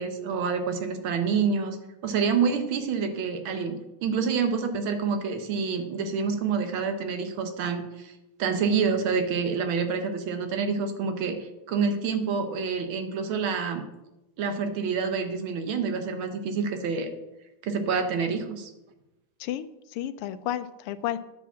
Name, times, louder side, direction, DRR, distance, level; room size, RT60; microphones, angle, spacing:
voice 1, 0.0-1.8 2.0-8.1 8.4-13.9 14.4-17.1 17.6-18.7, right 5 dB, 70° right, 7 dB, 1.7 m, -27 dB
voice 2, 19.4-21.2, left 11 dB, 85° left, 14 dB, 1.5 m, -32 dB
9.6 x 4.8 x 7.1 m, 0.96 s
omnidirectional pair, 2.4 m